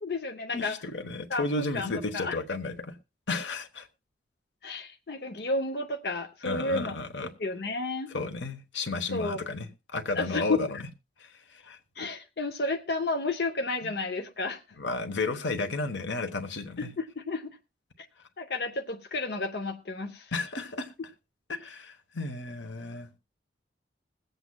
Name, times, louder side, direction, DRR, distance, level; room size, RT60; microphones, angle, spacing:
voice 1, 0.0-0.8 1.3-1.4 1.7-1.9 2.1-2.4 4.6-7.0 7.4-8.1 9.1-9.4 10.2-10.6 12.0-14.6 16.8-17.5 18.4-20.3, left 3 dB, 60° left, 0.7 m, -31 dB
voice 2, 0.5-2.9 3.3-3.9 6.4-7.3 8.1-10.8 11.2-11.8 13.8-13.9 14.8-16.9 20.3-20.9 21.5-23.1, left 3 dB, 90° left, 1.2 m, -33 dB
22.0 x 8.0 x 2.2 m
head